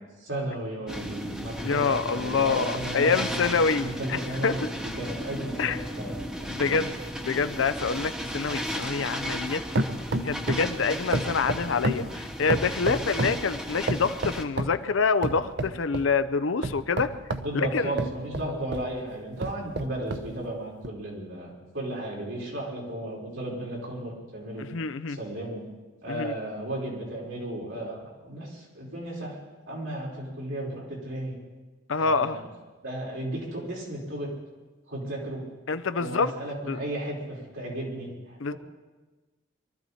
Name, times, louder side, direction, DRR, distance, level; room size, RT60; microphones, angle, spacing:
voice 1, 0.2-6.9 17.4-24.7 25.1-25.7 26.0-29.4 29.6-31.4 32.0-32.4 32.8-34.3 34.9-35.4 36.0-38.5, right 1 dB, 85° right, -4 dB, 5.0 m, -34 dB
sound 1, 0.9-14.4, equal, 5° right, 0.8 m, -35 dB
voice 2, 1.6-4.6 5.6-5.8 6.5-6.9 7.2-9.6 10.2-17.1 17.5-17.9 24.7-25.2 26.1-26.3 31.9-32.4 35.7-36.3 36.7-36.8 38.4-38.5, left 5 dB, 80° left, 11 dB, 0.6 m, -26 dB
sound 2, 6.1-9.5 9.8-10.8 11.1-13.4 13.9-14.8 15.2-16.1 16.6-18.9 19.4-20.3 20.8-20.9, right 2 dB, 55° right, 0.9 m, -31 dB
23.5 x 13.0 x 4.3 m, 1.2 s
head